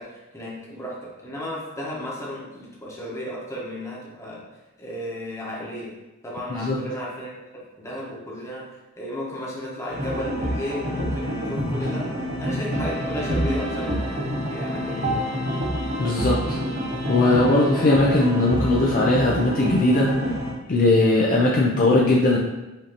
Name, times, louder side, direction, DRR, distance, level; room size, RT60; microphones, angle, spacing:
voice 1, 0.0-4.4 4.8-5.9 6.2-12.1 12.4-14.2 14.5-15.2, left 1 dB, 15° left, -5 dB, 0.9 m, -34 dB
sound 1, 9.9-20.5, equal, 50° right, 1.2 m, -27 dB
voice 2, 16.0-16.6 17.1-20.1 20.7-22.4, left 2 dB, 40° left, -4 dB, 0.4 m, -19 dB
5.1 x 2.7 x 2.9 m, 1.1 s
head